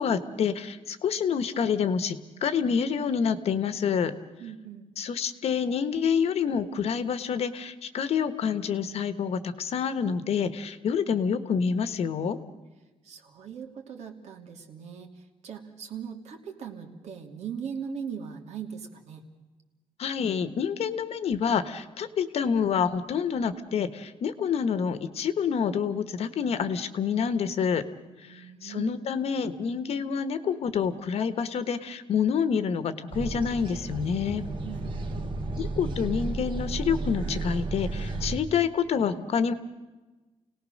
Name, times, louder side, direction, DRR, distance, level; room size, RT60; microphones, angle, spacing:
voice 1, 0.0-4.1 5.0-12.4 20.0-27.8 28.3-34.4 35.6-39.5, left 7 dB, 60° left, 12 dB, 1.3 m, -27 dB
voice 2, 4.4-4.9 13.0-15.1 15.4-19.2 28.2-29.0 34.6-35.3, right 7 dB, 70° right, 3 dB, 2.8 m, -39 dB
sound 1, 33.1-38.4, right 2 dB, 45° right, 2.5 m, -33 dB
29.5 x 18.5 x 6.5 m, 1.2 s
wide cardioid pair, 170°, 12 cm